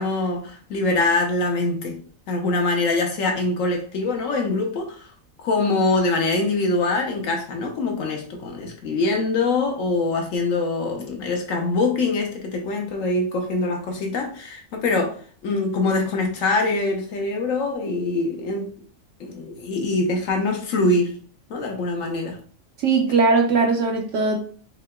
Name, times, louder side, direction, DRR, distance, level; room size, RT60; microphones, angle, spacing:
voice 1, 0.0-2.0 2.3-5.1 5.4-15.2 15.4-18.7 19.2-21.2 21.5-22.4, left 3 dB, 75° left, 1.2 m, -24 dB
voice 2, 22.8-24.4, right 4 dB, 70° right, 0.9 m, -19 dB
4.6 x 2.9 x 2.3 m
omnidirectional pair, 1.4 m